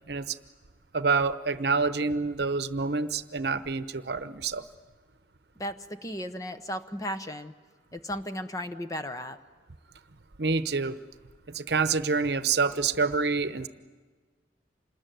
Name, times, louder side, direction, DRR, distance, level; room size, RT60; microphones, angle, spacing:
voice 1, 0.1-0.4 0.9-4.6 10.4-11.0 11.5-13.7, right 4 dB, 65° right, 12 dB, 0.9 m, -27 dB
voice 2, 5.6-7.5 7.9-9.4, equal, 20° left, 9 dB, 0.8 m, -35 dB
26.5 x 20.5 x 9.2 m, 1.4 s
head